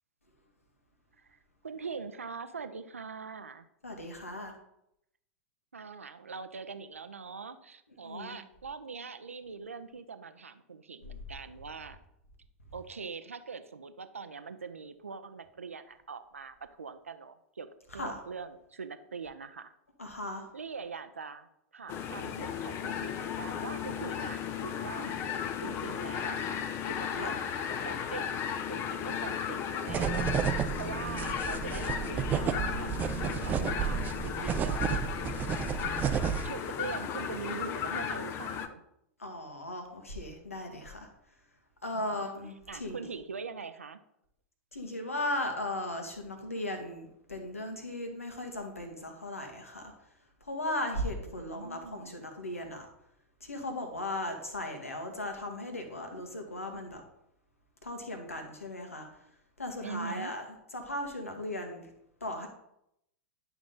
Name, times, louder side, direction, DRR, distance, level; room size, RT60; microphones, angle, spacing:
voice 1, 1.6-3.7 5.7-12.0 12.7-17.7 17.9-19.8 20.5-21.5 21.7-25.2 25.6-35.0 36.4-38.8 41.9-42.3 42.7-44.0 51.2-52.2 59.8-60.4, right 5 dB, 75° right, 10 dB, 0.6 m, -43 dB
voice 2, 3.8-4.5 8.0-8.4 17.9-18.2 20.0-20.5 25.0-25.1 27.2-27.3 39.2-41.1 41.8-43.0 44.7-49.9 50.4-52.9 53.4-57.0 57.8-59.1 59.6-60.4 60.7-61.9 62.2-62.5, left 1 dB, 80° left, 4 dB, 1.7 m, -37 dB
sound 1, 21.9-38.7, left 8 dB, 35° left, 0.8 m, -35 dB
sound 2, 29.9-36.5, right 8 dB, 25° right, 0.5 m, -32 dB
10.5 x 6.0 x 3.8 m, 0.79 s
figure-of-eight pair, 95°, 7 cm